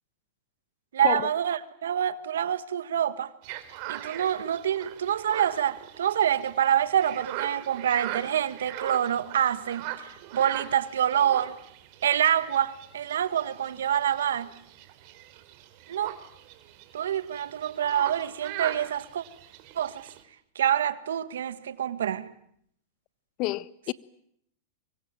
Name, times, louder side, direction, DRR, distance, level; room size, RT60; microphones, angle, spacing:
voice 1, 0.9-3.3 3.9-11.6 12.0-14.5 15.9-16.1 16.9-19.2 19.7-20.1 20.5-22.3, right 10 dB, 85° right, 1.6 m, -26 dB
sound 1, 3.4-20.2, right 13 dB, 55° right, 3.5 m, -41 dB
voice 2, 23.4-23.9, left 19 dB, 50° left, 1.1 m, -29 dB
25.0 x 23.0 x 9.1 m
hypercardioid pair, 115°, 0 cm